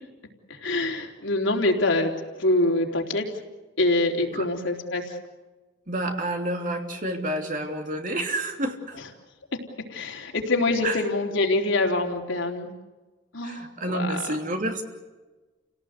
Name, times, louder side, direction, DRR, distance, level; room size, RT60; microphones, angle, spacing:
voice 1, 0.5-3.3 3.8-5.2 9.9-12.7 13.3-14.3, left 2 dB, 80° left, 1 dB, 3.6 m, -25 dB
voice 2, 5.9-9.0 10.8-11.0 13.4-14.8, right 1 dB, 45° right, 3 dB, 3.0 m, -29 dB
29.5 x 18.0 x 8.2 m, 1.2 s
head